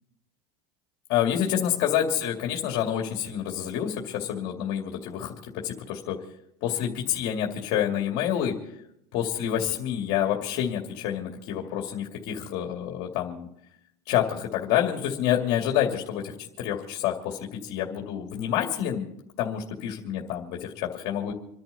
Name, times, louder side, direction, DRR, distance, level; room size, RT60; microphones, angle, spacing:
voice 1, 1.1-5.3 5.6-6.2 6.6-8.5 9.1-13.5 14.1-19.1 19.4-21.3, left 10 dB, 60° left, 1 dB, 2.5 m, -28 dB
28.0 x 10.5 x 4.2 m, 0.77 s
supercardioid pair, 135°, 12 cm